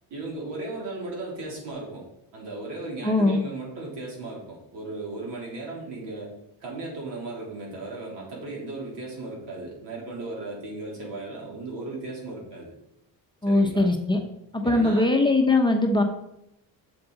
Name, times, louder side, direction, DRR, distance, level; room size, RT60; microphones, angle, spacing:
voice 1, 0.1-2.0 2.3-6.3 6.6-12.7 13.5-13.9 14.6-15.1, right 2 dB, 75° right, -2 dB, 3.5 m, -36 dB
voice 2, 3.0-3.4 13.4-14.2 14.5-16.0, left 2 dB, 10° left, 2 dB, 0.8 m, -21 dB
7.7 x 6.9 x 4.0 m, 0.81 s
cardioid pair, 135°, 42 cm